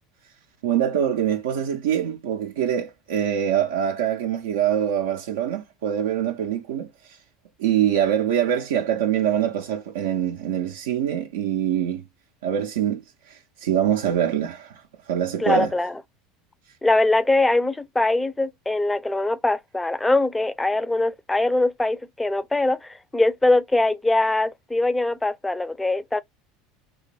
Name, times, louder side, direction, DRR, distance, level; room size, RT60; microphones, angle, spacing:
voice 1, 0.6-7.2 7.6-12.1 12.4-13.0 13.3-14.8 15.1-15.7, right 9 dB, 75° right, 0.4 m, -24 dB
voice 2, 15.4-16.0 16.8-26.2, left 2 dB, 10° left, 0.4 m, -22 dB
2.5 x 2.2 x 3.2 m
hypercardioid pair, 80°, 0 cm